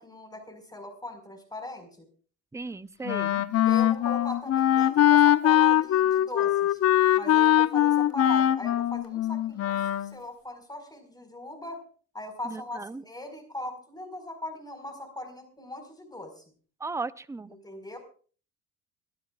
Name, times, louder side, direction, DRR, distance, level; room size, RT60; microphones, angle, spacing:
voice 1, 0.0-2.0 3.6-6.8 7.2-11.8 12.1-16.4 17.5-18.0, left 1 dB, 10° left, 5 dB, 4.7 m, -40 dB
voice 2, 2.5-3.5 12.4-13.0 16.8-17.5, right 3 dB, 10° right, 16 dB, 0.6 m, -36 dB
Wind instrument woodwind instrument, 3.1-10.1, left 11 dB, 45° left, 0.9 m, -22 dB
28.5 x 12.5 x 2.4 m, 0.41 s
supercardioid pair, 80°, 35 cm